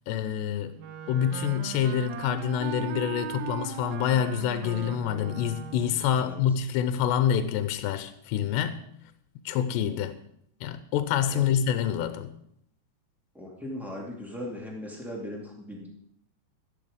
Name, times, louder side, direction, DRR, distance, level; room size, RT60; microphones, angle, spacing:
voice 1, 0.1-0.7 1.1-8.8 9.5-10.1 10.6-12.4, left 9 dB, 90° left, 11 dB, 2.9 m, -27 dB
Wind instrument woodwind instrument, 0.8-6.1, right 10 dB, 80° right, 2.1 m, -38 dB
voice 2, 13.3-15.9, left 1 dB, 5° right, -2 dB, 0.3 m, -38 dB
13.0 x 11.0 x 5.0 m, 0.72 s
omnidirectional pair, 4.9 m